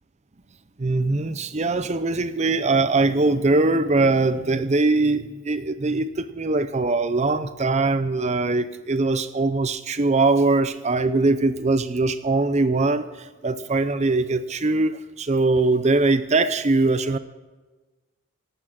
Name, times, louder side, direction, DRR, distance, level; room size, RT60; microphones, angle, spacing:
voice 1, 0.8-17.2, right 3 dB, 35° right, 12 dB, 0.6 m, -22 dB
18.0 x 8.5 x 7.5 m, 1.2 s
head